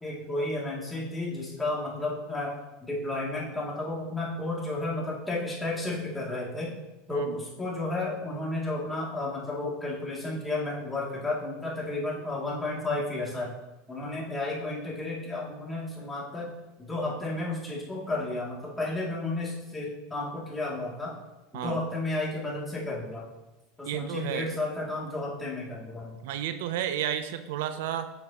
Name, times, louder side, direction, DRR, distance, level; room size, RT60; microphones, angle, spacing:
voice 1, 0.0-6.7 7.1-13.5 13.9-16.5 16.8-21.1 21.5-23.2 23.8-26.2, left 2 dB, 10° left, -5 dB, 2.5 m, -32 dB
voice 2, 23.9-24.5 26.2-28.1, right 10 dB, 75° right, 10 dB, 0.5 m, -32 dB
9.6 x 6.5 x 2.9 m, 1.0 s
supercardioid pair, 130°, 0 cm